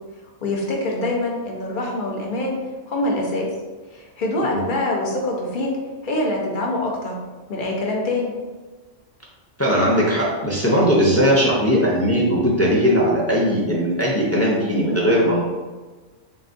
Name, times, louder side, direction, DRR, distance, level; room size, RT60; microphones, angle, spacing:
voice 1, 0.4-2.5 2.9-3.5 3.9-5.7 6.0-7.2 7.5-8.4, left 2 dB, 45° left, -1 dB, 0.8 m, -24 dB
voice 2, 9.6-15.4, equal, 20° left, -4 dB, 0.5 m, -19 dB
3.9 x 3.5 x 2.6 m, 1.3 s
omnidirectional pair, 1.3 m